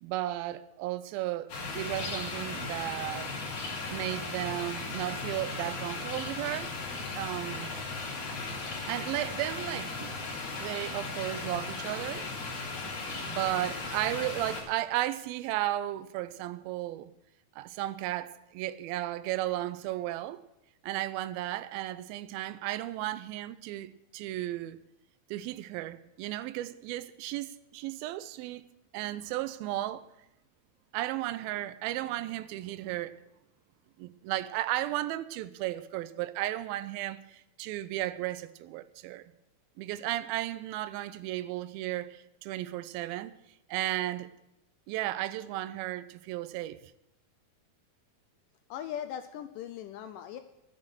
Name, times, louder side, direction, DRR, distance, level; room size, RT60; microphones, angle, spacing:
voice 1, 0.0-1.5 1.8-3.3 3.9-6.7 7.1-7.7 8.9-10.2 10.6-12.3 13.3-17.1 17.6-20.4 20.8-24.8 25.3-28.7 28.9-30.0 30.9-33.1 34.0-39.3 39.8-43.3 43.7-44.3 44.9-46.8, right 15 dB, 85° right, 2.4 m, -34 dB
sound 1, 1.5-14.6, left 3 dB, 60° left, 5.3 m, -37 dB
voice 2, 48.7-50.4, left 10 dB, 80° left, 1.9 m, -39 dB
12.5 x 9.7 x 6.3 m
omnidirectional pair, 4.3 m